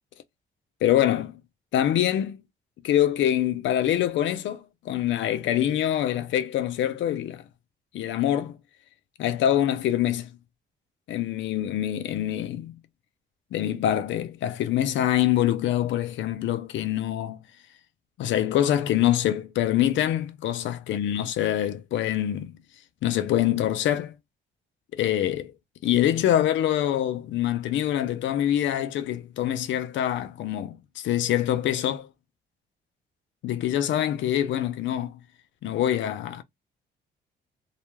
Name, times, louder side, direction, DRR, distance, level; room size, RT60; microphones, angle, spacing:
voice 1, 0.8-1.4 1.7-2.4 2.8-7.4 7.9-8.6 9.2-10.3 11.1-12.8 13.5-17.4 18.2-22.5 23.0-24.1 24.9-25.5 25.8-32.1 33.4-35.2 35.6-36.4, left 11 dB, 70° left, 0.5 m, -25 dB
2.3 x 2.1 x 3.0 m
cardioid pair, 90°, 20 cm